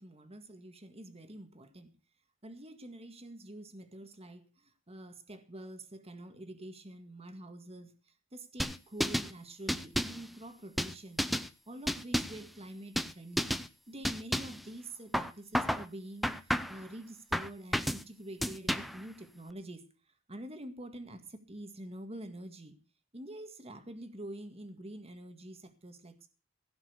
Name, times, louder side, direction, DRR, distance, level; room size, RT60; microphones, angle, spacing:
voice 1, 0.0-1.9 2.4-11.2 11.7-13.5 13.9-19.9 20.3-22.8 23.1-26.3, right 1 dB, 30° right, 8 dB, 1.9 m, -47 dB
sound 1, 8.6-9.3 9.7-10.2 10.8-11.5 11.9-12.4 13.0-13.1 13.4-13.7 14.0-14.6 15.1-15.9 16.2-16.8 17.3-18.0 18.4-19.0, equal, ahead, 0.6 m, -32 dB
16.5 x 5.9 x 8.3 m, 0.36 s
head